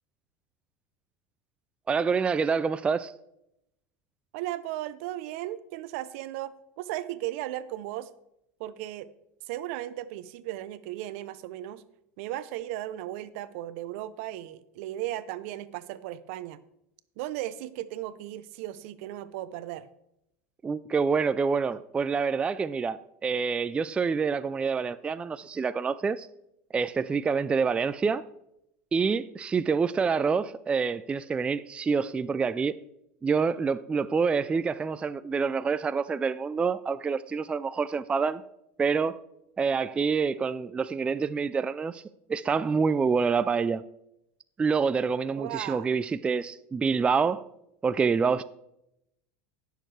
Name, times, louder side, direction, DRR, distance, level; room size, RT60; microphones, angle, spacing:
voice 1, 1.9-3.1 20.6-26.3 26.7-28.2 28.9-32.8 33.2-38.4 38.8-39.2 39.6-42.0 42.3-43.8 44.6-47.4 47.8-48.4, right 5 dB, 15° right, 0.3 m, -27 dB
voice 2, 4.3-8.1 8.6-9.1 9.5-11.8 12.2-16.6 17.2-19.9 45.4-45.9, right 14 dB, 70° right, 0.7 m, -36 dB
16.5 x 6.5 x 3.3 m
supercardioid pair, 120°, 7 cm